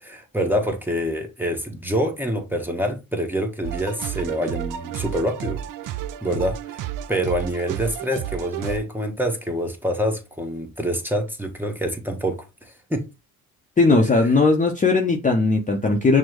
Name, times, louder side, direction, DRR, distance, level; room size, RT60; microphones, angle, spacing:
voice 1, 0.0-5.6 6.2-12.4 12.9-13.1, equal, 5° right, 1.0 m, -26 dB
sound 1, 3.6-8.8, right 12 dB, 50° right, 0.5 m, -31 dB
voice 2, 13.8-16.2, left 3 dB, 20° left, 0.7 m, -18 dB
6.0 x 2.1 x 3.0 m
hypercardioid pair, 65°, 41 cm